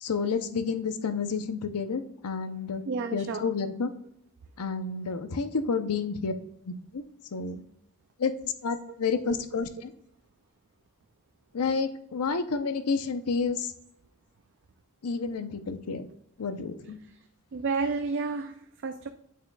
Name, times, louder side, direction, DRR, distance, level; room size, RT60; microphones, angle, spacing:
voice 1, 0.0-2.8 3.1-3.9 4.6-6.3 6.6-7.0 7.3-7.6 8.2-9.9 11.5-13.7 15.0-16.1 16.4-17.0, left 5 dB, 85° left, 9 dB, 0.6 m, -30 dB
voice 2, 2.8-3.4 9.2-9.3 17.0-17.2 17.5-19.1, right 4 dB, 55° right, 6 dB, 0.4 m, -31 dB
8.5 x 7.1 x 2.3 m, 0.75 s
head